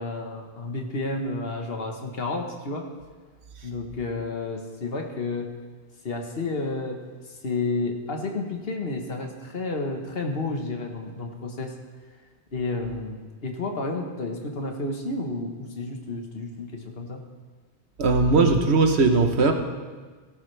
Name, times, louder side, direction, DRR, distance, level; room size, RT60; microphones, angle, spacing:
voice 1, 0.0-2.9 3.6-5.5 6.0-11.8 12.5-17.2, left 3 dB, 60° left, 3 dB, 1.5 m, -31 dB
voice 2, 18.0-19.5, right 3 dB, 70° right, 5 dB, 1.3 m, -19 dB
16.5 x 12.5 x 3.3 m, 1.4 s
omnidirectional pair, 1.1 m